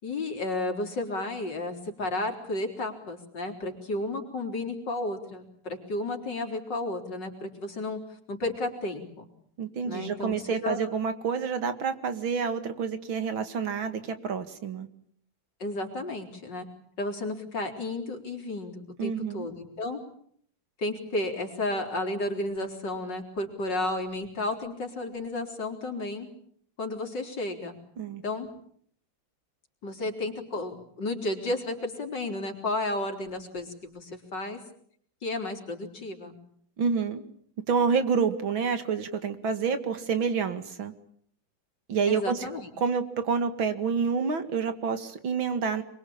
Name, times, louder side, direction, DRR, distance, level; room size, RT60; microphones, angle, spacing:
voice 1, 0.0-8.0 8.3-9.3 9.8-10.8 15.6-16.7 17.0-20.0 20.8-26.3 26.8-27.8 28.2-28.5 29.8-34.6 35.2-36.3 42.1-42.7, left 2 dB, 60° left, 4 dB, 4.6 m, -32 dB
voice 2, 9.6-14.9 19.0-19.5 28.0-28.2 36.8-37.2 37.7-40.9 41.9-42.4 42.8-45.8, right 6 dB, 85° right, 9 dB, 2.9 m, -28 dB
26.0 x 23.0 x 8.7 m, 0.65 s
omnidirectional pair, 2.1 m